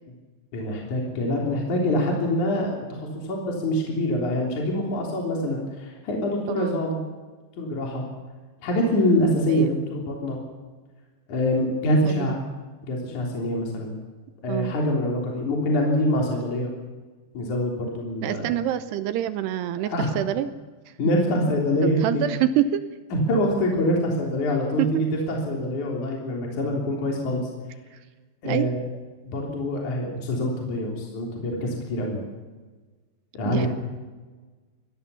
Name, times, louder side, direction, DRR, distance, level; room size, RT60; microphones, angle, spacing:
voice 1, 0.5-7.0 7.6-8.0 8.6-10.4 11.3-12.4 12.9-14.0 14.4-16.7 17.3-18.5 19.8-20.1 21.0-22.2 23.1-27.5 28.4-28.7 29.2-32.2 33.3-33.7, left 1 dB, 45° left, -1 dB, 4.5 m, -25 dB
voice 2, 12.1-12.4 14.5-14.7 18.2-20.5 21.8-22.9 24.8-25.0 28.4-28.7 33.5-33.7, right 11 dB, 75° right, 12 dB, 2.7 m, -26 dB
22.5 x 17.0 x 7.0 m, 1.3 s
omnidirectional pair, 5.2 m